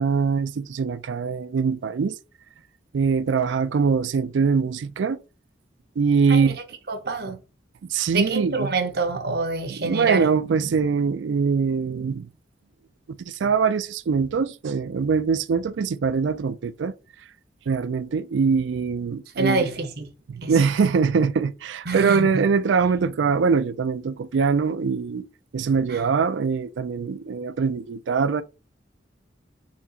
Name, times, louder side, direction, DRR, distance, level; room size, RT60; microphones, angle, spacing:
voice 1, 0.0-2.2 2.9-5.2 6.0-6.6 7.8-8.7 9.7-12.3 13.1-16.9 17.7-19.7 20.3-25.3 25.5-28.4, right 5 dB, 90° right, 0.4 m, -23 dB
voice 2, 6.9-7.4 8.1-10.3 19.4-20.1 20.4-20.5 21.9-22.5 25.9-26.0, right 3 dB, 60° right, 0.8 m, -26 dB
4.4 x 2.8 x 4.0 m
head